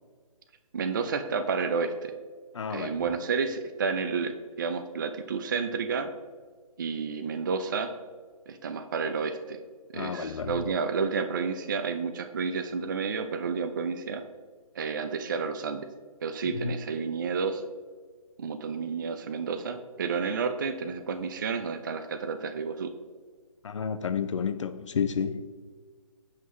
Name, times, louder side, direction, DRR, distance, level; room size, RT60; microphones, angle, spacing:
voice 1, 0.7-2.1 2.7-6.1 6.8-7.9 8.5-9.6 9.9-14.2 14.8-15.9 16.2-17.6 18.4-22.9, right 5 dB, 35° right, 0.3 m, -30 dB
voice 2, 2.5-3.0 9.9-10.7 16.4-16.7 23.6-25.5, left 6 dB, 55° left, 0.4 m, -31 dB
7.7 x 5.6 x 3.1 m
hypercardioid pair, 155°, 19 cm